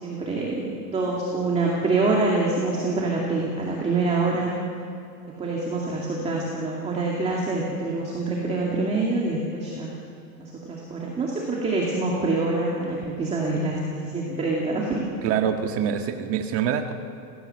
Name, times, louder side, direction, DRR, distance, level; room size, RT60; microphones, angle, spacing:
voice 1, 0.0-4.5 5.3-9.9 10.4-15.0, right 3 dB, 15° right, -2 dB, 2.4 m, -26 dB
voice 2, 15.2-16.9, right 8 dB, 30° right, 5 dB, 1.6 m, -25 dB
28.5 x 17.0 x 7.9 m, 2.7 s
supercardioid pair, 165°, 47 cm